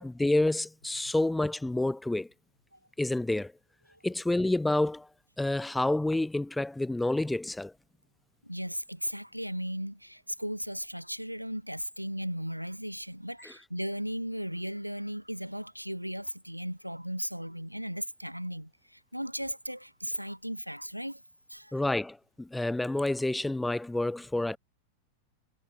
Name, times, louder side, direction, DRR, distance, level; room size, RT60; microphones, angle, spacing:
voice 1, 0.0-2.3 3.0-3.5 4.0-5.1 5.4-7.7 21.7-24.6, left 2 dB, 5° left, 0.4 m, -28 dB
voice 2, 8.4-21.2 21.5-21.7, equal, 90° right, 0.5 m, -36 dB
figure-of-eight pair, 90°, 0 cm